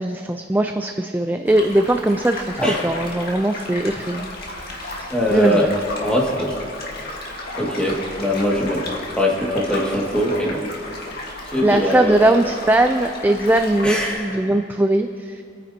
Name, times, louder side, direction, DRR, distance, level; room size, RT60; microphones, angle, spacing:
voice 1, 0.0-4.6 4.9-5.7 11.6-15.4, right 1 dB, 10° right, 6 dB, 0.4 m, -20 dB
sound 1, 1.5-14.2, left 1 dB, 60° left, 1.9 m, -33 dB
voice 2, 5.1-5.6 6.0-6.6 7.6-8.8 9.1-10.6 11.5-12.2 13.8-14.2, left 1 dB, 5° left, -3 dB, 2.0 m, -21 dB
26.0 x 9.5 x 2.8 m, 2.7 s
head